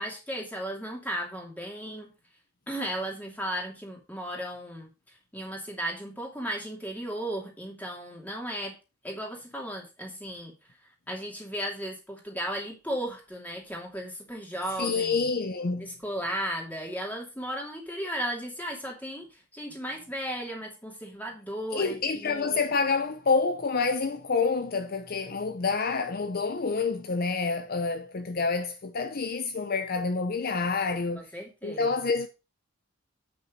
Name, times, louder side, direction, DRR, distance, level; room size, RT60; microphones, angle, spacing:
voice 1, 0.0-2.1 2.7-4.9 5.3-8.8 9.0-10.5 11.1-15.3 15.8-22.6 31.2-31.9, equal, 10° left, 2.7 m, -35 dB
voice 2, 14.8-15.9 21.7-31.3 31.6-32.3, left 4 dB, 45° left, 0.7 m, -28 dB
8.6 x 6.2 x 5.1 m
head